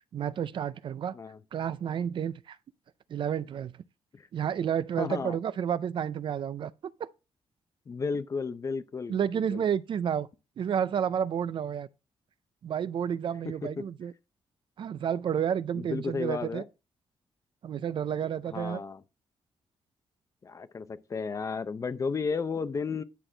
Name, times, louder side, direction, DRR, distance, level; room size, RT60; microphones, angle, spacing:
voice 1, 0.1-1.1 1.5-2.6 3.1-3.7 4.3-6.7 7.0-7.1 9.1-10.3 10.6-11.9 12.6-14.1 14.8-16.6 17.6-18.8, right 8 dB, 50° right, 0.4 m, -30 dB
voice 2, 5.0-5.4 7.9-9.6 13.6-13.8 15.7-16.7 18.5-19.0 20.4-23.0, left 5 dB, 30° left, 0.6 m, -33 dB
10.0 x 6.1 x 3.3 m
wide cardioid pair, 155°, 10 cm